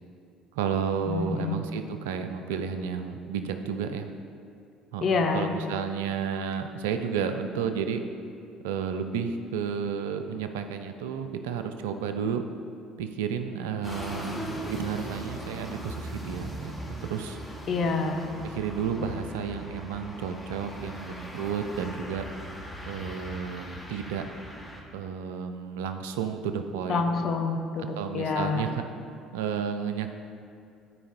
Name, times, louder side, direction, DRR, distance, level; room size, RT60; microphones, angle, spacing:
voice 1, 0.5-4.1 4.9-8.0 8.6-12.4 13.0-17.4 18.4-22.2 22.9-24.3 24.9-27.2 27.9-28.9 29.3-30.1, right 7 dB, 75° right, 7 dB, 0.4 m, -32 dB
voice 2, 1.1-1.6 5.0-5.5 17.7-18.3 26.9-28.6, left 4 dB, 50° left, 4 dB, 0.8 m, -27 dB
sound 1, 13.8-24.8, equal, 15° left, 1.5 m, -39 dB
12.5 x 4.7 x 2.7 m, 2.5 s
figure-of-eight pair, 55°, 0 cm